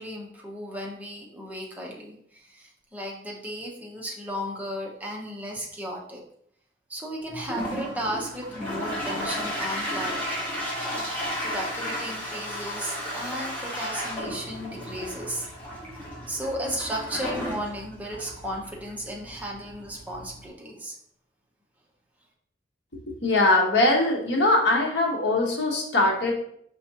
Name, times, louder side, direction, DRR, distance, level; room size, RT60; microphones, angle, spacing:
voice 1, 0.0-6.2 6.9-10.4 11.4-15.5 16.3-21.0, equal, 10° right, -2 dB, 0.6 m, -35 dB
Toilet flush, 7.3-20.4, equal, 10° left, 1.2 m, -34 dB
voice 2, 23.1-26.3, left 2 dB, 70° left, -1 dB, 1.0 m, -22 dB
4.5 x 3.4 x 2.8 m, 0.67 s
head